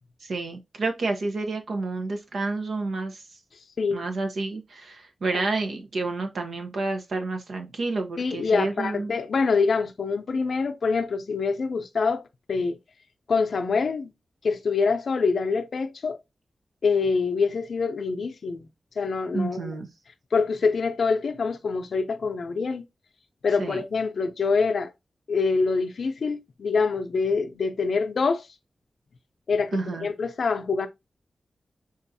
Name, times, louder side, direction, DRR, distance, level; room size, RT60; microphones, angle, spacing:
voice 1, 0.2-3.2 3.9-9.2 19.3-19.9 23.6-23.8 29.7-30.1, right 3 dB, 75° right, 0.8 m, -29 dB
voice 2, 8.2-12.2 12.5-12.8 13.3-14.1 14.4-16.2 16.8-18.7 19.0-19.7 20.3-22.8 23.4-24.9 25.3-28.5 29.5-30.9, left 4 dB, 70° left, 0.5 m, -25 dB
5.4 x 2.5 x 2.7 m
wide cardioid pair, 80°, 0 cm